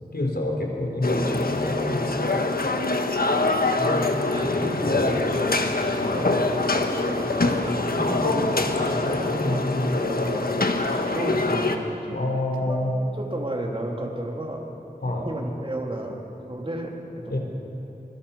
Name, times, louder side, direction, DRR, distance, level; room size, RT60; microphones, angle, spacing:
voice 1, 0.1-2.4 4.8-5.2 6.0-6.3 8.0-10.8 12.1-13.0 15.0-15.3 17.3-17.4, left 1 dB, 85° left, 1 dB, 3.7 m, -27 dB
sound 1, 1.0-11.8, left 2 dB, 65° left, 1.5 m, -25 dB
voice 2, 3.8-5.5 6.1-6.5 6.9-8.4 9.1-9.6 11.1-11.8 12.1-12.2 12.6-12.9 13.2-14.6 15.0-17.4, right 1 dB, 35° right, 0 dB, 3.1 m, -32 dB
25.5 x 21.5 x 5.7 m, 3.0 s
wide cardioid pair, 55°, 16 cm